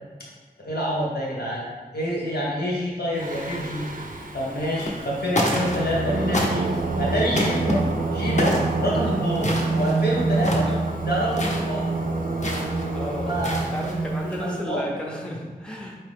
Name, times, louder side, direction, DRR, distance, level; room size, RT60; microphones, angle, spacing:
voice 1, 0.6-1.7 1.9-3.9 4.3-6.7 7.0-7.8 8.1-10.7 11.0-11.9 13.3-14.0 14.2-14.8, equal, 85° left, -5 dB, 1.2 m, -27 dB
Singing, 3.2-14.5, right 3 dB, 60° right, 0.5 m, -27 dB
sound 1, 4.7-5.1 5.3-6.0 6.3-6.8 7.3-7.7 8.4-8.7 9.3-10.0 10.3-10.8 11.3-11.6 12.4-12.8 13.3-13.9, left 1 dB, 50° left, 0.8 m, -27 dB
voice 2, 10.5-10.8 12.9-16.0, equal, 5° left, -3 dB, 0.6 m, -34 dB
4.4 x 2.9 x 3.4 m, 1.4 s
wide cardioid pair, 60°, 16 cm